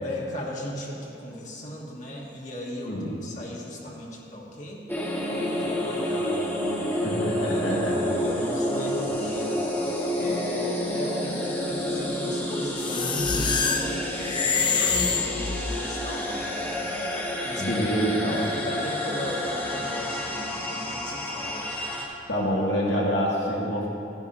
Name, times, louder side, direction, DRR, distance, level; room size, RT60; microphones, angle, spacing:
voice 1, 0.0-3.0 3.2-4.9 5.3-6.9 7.4-16.8 17.4-18.0 18.5-21.7, left 1 dB, 45° left, -3 dB, 1.3 m, -37 dB
sound 1, 4.9-22.0, left 1 dB, 10° left, 1.4 m, -29 dB
voice 2, 6.9-8.0 17.6-18.5 22.3-23.9, equal, 90° left, -5 dB, 2.3 m, -26 dB
sound 2, 12.8-16.0, left 5 dB, 25° left, 0.6 m, -26 dB
13.0 x 10.5 x 2.8 m, 2.9 s
head